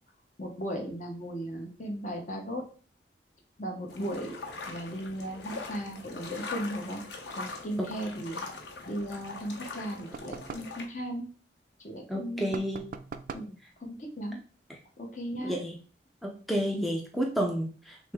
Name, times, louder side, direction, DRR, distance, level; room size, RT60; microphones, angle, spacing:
voice 1, 0.4-2.7 3.6-4.4 4.7-7.0 7.3-8.4 8.9-11.3 11.8-12.6 13.3-13.5 13.8-14.4 15.0-15.6 16.7-16.9, equal, 45° left, 2 dB, 1.0 m, -36 dB
sound 1, 3.9-10.9, left 3 dB, 75° left, 0.8 m, -42 dB
sound 2, 10.1-10.8 12.5-13.6, right 5 dB, 50° right, 0.3 m, -41 dB
voice 2, 12.1-12.8 14.7-14.8 15.4-15.8 16.2-18.1, equal, ahead, 0 dB, 0.5 m, -31 dB
6.2 x 2.1 x 3.5 m, 0.40 s
head